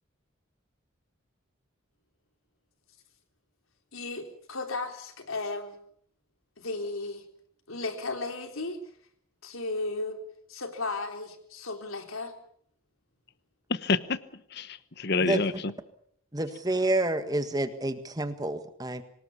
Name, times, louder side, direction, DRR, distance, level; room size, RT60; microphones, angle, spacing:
voice 1, 3.9-5.8 6.6-7.2 7.7-8.8 9.4-10.2 10.5-12.3, left 3 dB, 85° left, 6 dB, 3.7 m, -35 dB
voice 2, 13.7-15.7, left 3 dB, 50° left, 15 dB, 1.0 m, -28 dB
voice 3, 15.2-15.6 16.3-19.0, right 2 dB, 20° right, 10 dB, 1.7 m, -29 dB
25.5 x 19.5 x 7.2 m, 0.64 s
head